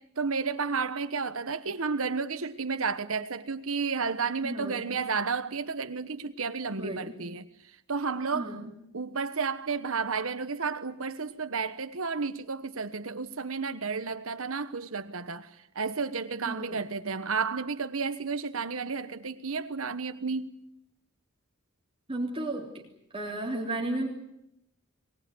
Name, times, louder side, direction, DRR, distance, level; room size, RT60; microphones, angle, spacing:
voice 1, 0.0-7.5 7.9-8.6 8.9-15.5 15.7-20.6, right 5 dB, 80° right, 1.2 m, -32 dB
voice 2, 4.4-4.9 6.7-7.1 8.3-8.7 16.4-16.8 22.1-22.8 23.1-24.1, right 2 dB, 30° right, 3.3 m, -34 dB
23.5 x 19.5 x 9.5 m
head